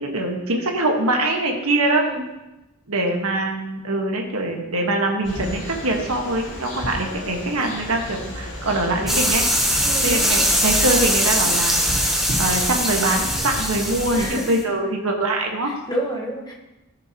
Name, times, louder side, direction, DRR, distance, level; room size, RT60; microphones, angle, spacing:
voice 1, 0.0-2.0 2.9-9.5 10.0-11.8 12.4-15.7, right 2 dB, 75° right, 2 dB, 1.4 m, -23 dB
voice 2, 1.8-2.3 9.8-10.6 14.1-14.6 15.6-16.5, equal, 20° left, 0 dB, 1.2 m, -30 dB
sound 1, 5.2-14.3, equal, 55° left, 3.2 m, -33 dB
sound 2, 9.1-14.6, equal, ahead, 0.9 m, -21 dB
14.0 x 6.8 x 2.9 m, 0.99 s
head